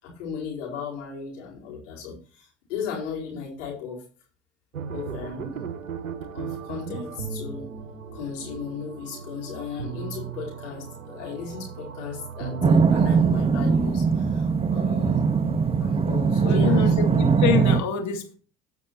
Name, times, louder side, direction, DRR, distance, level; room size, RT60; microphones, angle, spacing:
voice 1, 0.0-4.0 4.9-5.6 6.3-7.7 8.1-15.3 15.8-16.9, left 6 dB, 65° left, -3 dB, 4.4 m, -36 dB
sound 1, 4.7-13.9, right 6 dB, 80° right, 0.9 m, -37 dB
sound 2, 12.6-17.8, right 5 dB, 15° right, 0.8 m, -21 dB
voice 2, 16.4-18.4, left 9 dB, 45° left, 4 dB, 2.0 m, -26 dB
17.0 x 5.9 x 2.7 m, 0.38 s
figure-of-eight pair, 65°, 39 cm